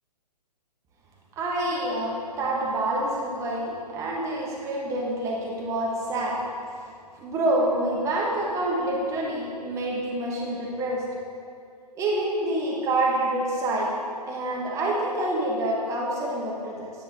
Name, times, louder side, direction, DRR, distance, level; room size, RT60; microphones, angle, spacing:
voice 1, 1.4-6.4 7.2-11.0 11.9-13.9 14.3-16.9, right 1 dB, 15° right, -3 dB, 1.3 m, -27 dB
9.8 x 8.4 x 3.9 m, 2.3 s
figure-of-eight pair, 130°, 21 cm